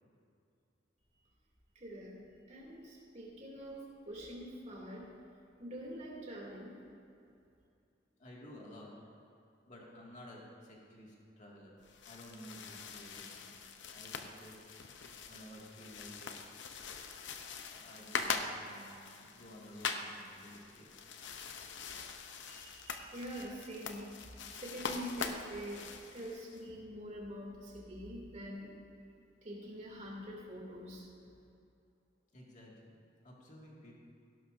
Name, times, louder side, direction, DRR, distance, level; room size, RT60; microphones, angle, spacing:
voice 1, 1.7-2.2 2.5-5.1 5.6-6.8 22.5-28.7 29.4-31.1, equal, 40° right, -3 dB, 2.8 m, -45 dB
voice 2, 8.2-8.9 9.7-11.8 12.0-13.6 13.9-14.6 15.3-16.3 17.7-21.0 32.3-34.0, equal, 40° left, -3 dB, 2.2 m, -53 dB
sound 1, 11.8-26.6, left 5 dB, 70° left, 0.8 m, -43 dB
16.5 x 12.0 x 2.7 m, 2.5 s
head